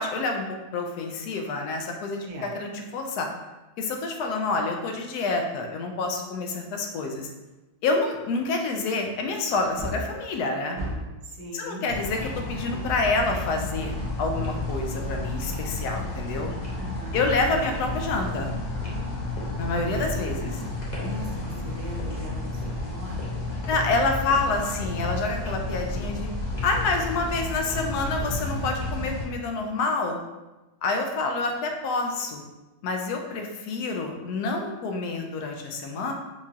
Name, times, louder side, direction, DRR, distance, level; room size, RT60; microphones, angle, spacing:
voice 1, 0.0-3.3 3.8-7.3 7.8-10.8 11.5-16.5 17.1-18.5 19.6-20.5 23.7-26.3 26.6-30.2 30.8-32.4 32.8-36.1, left 3 dB, 90° left, 3 dB, 1.1 m, -28 dB
voice 2, 2.2-2.5 11.2-11.9 16.7-17.2 20.4-23.4, equal, 85° right, -1 dB, 1.3 m, -40 dB
Wood, 9.5-11.3 14.0-14.7 15.1-15.2, equal, 55° right, 0.9 m, -36 dB
sound 1, 11.9-29.3, left 2 dB, 45° left, 0.5 m, -31 dB
4.7 x 2.4 x 2.7 m, 1.1 s
omnidirectional pair, 1.6 m